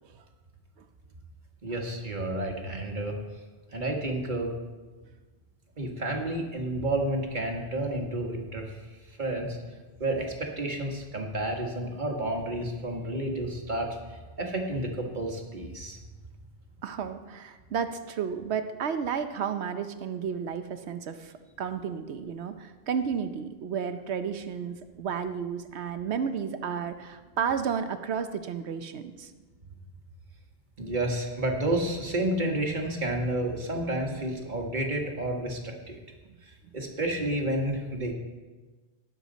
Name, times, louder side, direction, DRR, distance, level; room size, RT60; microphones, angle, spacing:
voice 1, 1.6-3.2 3.7-4.5 5.8-8.8 9.2-9.6 10.0-16.0 30.8-36.0 36.7-38.1, right 1 dB, 45° right, 1 dB, 1.8 m, -30 dB
voice 2, 16.8-29.3, right 7 dB, 80° right, 9 dB, 1.0 m, -32 dB
18.5 x 7.2 x 4.0 m, 1.3 s
omnidirectional pair, 1.1 m